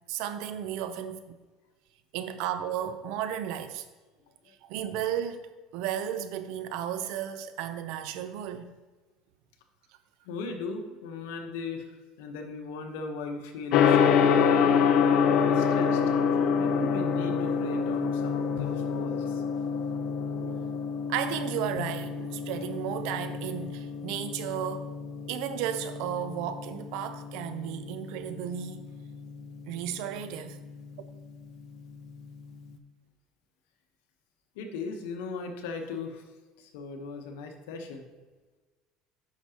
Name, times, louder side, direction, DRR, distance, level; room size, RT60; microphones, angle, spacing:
voice 1, 0.1-1.2 2.1-3.9 4.6-8.7 20.4-20.7 21.1-24.9 25.3-28.8 29.7-30.6, right 9 dB, 75° right, 11 dB, 0.6 m, -34 dB
voice 2, 10.3-11.9 12.2-14.7 15.2-16.0 16.6-19.4 34.6-36.2 36.6-38.1, left 4 dB, 90° left, 5 dB, 1.0 m, -37 dB
Gong, 13.7-32.7, left 6 dB, 60° left, 0.6 m, -28 dB
9.7 x 6.0 x 2.9 m, 1.3 s
supercardioid pair, 125°, 0 cm